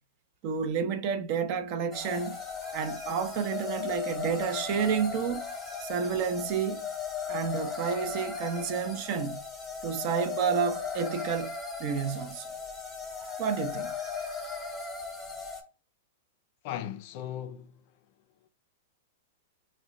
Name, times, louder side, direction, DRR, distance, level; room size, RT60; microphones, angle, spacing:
voice 1, 0.4-2.4 2.7-5.5 5.8-6.9 7.3-9.4 9.8-11.5 11.8-12.5 13.4-13.9, right 6 dB, 45° right, 0.5 m, -30 dB
sound 1, 1.9-15.6, left 5 dB, 5° left, 0.9 m, -37 dB
voice 2, 16.6-17.8, left 11 dB, 45° left, 0.4 m, -37 dB
4.0 x 2.1 x 3.6 m
hypercardioid pair, 145°, 0 cm